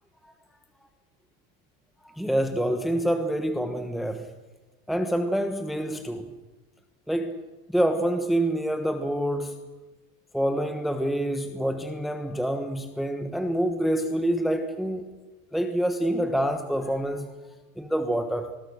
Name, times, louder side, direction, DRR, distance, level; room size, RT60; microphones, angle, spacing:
voice 1, 2.1-4.3 4.9-6.3 7.1-7.4 7.7-9.6 10.3-15.1 15.5-17.3 17.8-18.5, right 1 dB, ahead, 1.2 m, -26 dB
27.5 x 20.5 x 6.4 m
supercardioid pair, 135°, 46 cm